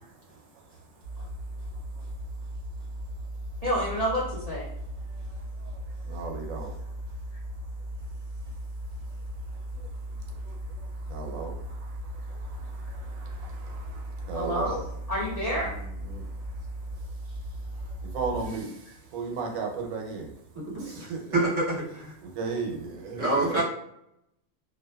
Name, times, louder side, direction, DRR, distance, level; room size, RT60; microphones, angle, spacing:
sound 1, 1.0-18.5, equal, 85° left, 1.1 m, -37 dB
voice 1, 3.6-4.6 14.3-14.8 15.1-15.7, equal, 55° left, -7 dB, 0.4 m, -28 dB
voice 2, 5.6-6.7 9.5-9.9 10.2-14.8 15.6-16.5 17.7-20.3 21.1-21.2 22.2-23.6, right 4 dB, 80° right, 1 dB, 1.0 m, -36 dB
voice 3, 21.3-22.1 23.1-23.6, right 2 dB, 30° right, -7 dB, 0.8 m, -26 dB
2.5 x 2.3 x 2.2 m, 0.78 s
omnidirectional pair, 1.4 m